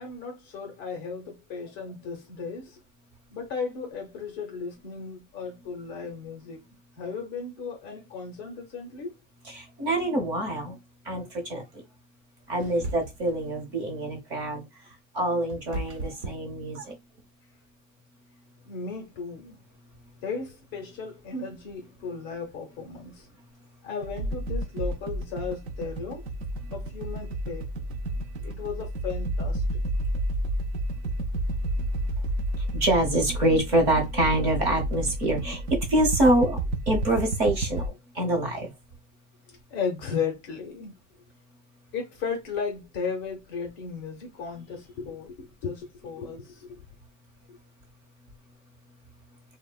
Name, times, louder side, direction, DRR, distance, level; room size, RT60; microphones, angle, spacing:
voice 1, 0.0-2.8 3.3-6.6 7.0-9.1 18.6-19.6 20.2-23.3 23.8-26.3 26.7-27.7 28.4-29.6 39.5-40.9 41.9-46.8 47.5-47.6, left 5 dB, 30° left, 0.5 m, -35 dB
voice 2, 9.5-10.8 11.0-11.8 12.5-14.7 15.1-17.0 32.6-36.6 36.9-38.7, right 1 dB, 35° right, 0.8 m, -26 dB
sound 1, 12.6-13.4 14.9-17.2, right 2 dB, 75° right, 0.9 m, -37 dB
sound 2, 24.0-37.9, right 1 dB, 55° right, 0.4 m, -30 dB
3.1 x 2.0 x 2.2 m
supercardioid pair, 175°, 37 cm